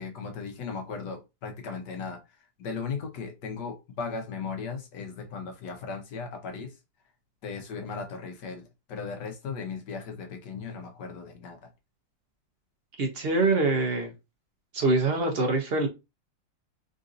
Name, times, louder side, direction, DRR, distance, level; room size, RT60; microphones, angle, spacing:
voice 1, 0.0-2.2 2.6-6.7 7.4-11.7, left 5 dB, 70° left, 1.4 m, -37 dB
voice 2, 13.0-14.1 14.7-15.9, right 3 dB, 65° right, 0.6 m, -24 dB
3.8 x 2.6 x 2.5 m
omnidirectional pair, 2.0 m